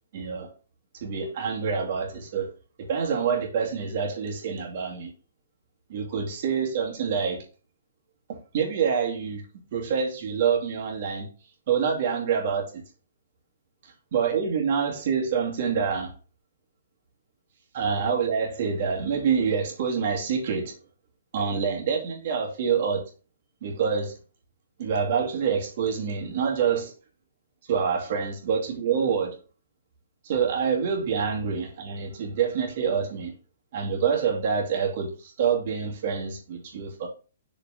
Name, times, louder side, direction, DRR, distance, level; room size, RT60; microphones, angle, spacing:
voice 1, 0.1-0.5 1.0-2.5 2.8-5.1 5.9-7.4 8.3-9.4 9.7-11.3 11.7-12.8 14.1-16.1 17.7-20.7 21.3-23.0 23.6-24.1 24.8-26.9 27.7-29.4 30.2-33.3 33.7-37.1, right 6 dB, 50° right, 2.5 m, -26 dB
6.6 x 5.2 x 3.8 m
hypercardioid pair, 155°, 0 cm